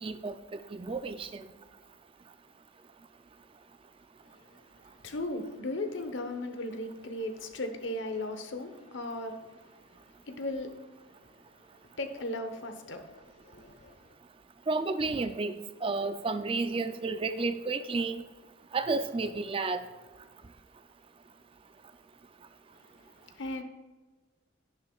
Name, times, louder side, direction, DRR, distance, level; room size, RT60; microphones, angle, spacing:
voice 1, 0.0-1.5 14.7-18.2 18.7-19.8, right 3 dB, 25° right, 10 dB, 0.4 m, -32 dB
voice 2, 5.0-9.4 10.3-10.9 12.0-14.0 23.4-23.6, left 1 dB, 70° left, 6 dB, 1.0 m, -36 dB
11.5 x 10.0 x 2.4 m, 1.3 s
head